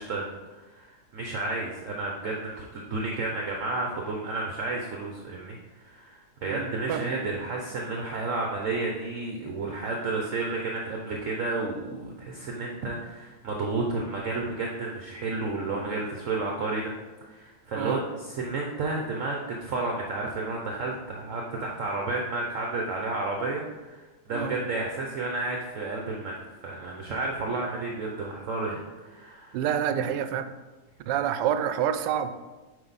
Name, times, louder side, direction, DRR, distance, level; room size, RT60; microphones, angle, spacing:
voice 1, 0.0-16.9 17.2-26.3 26.6-29.6, right 3 dB, 55° right, 0 dB, 1.0 m, -31 dB
voice 2, 6.4-7.1 17.8-18.0 24.3-24.6 29.5-30.5 31.1-32.3, right 9 dB, 85° right, 10 dB, 1.2 m, -28 dB
7.9 x 5.1 x 4.0 m, 1.2 s
omnidirectional pair, 1.8 m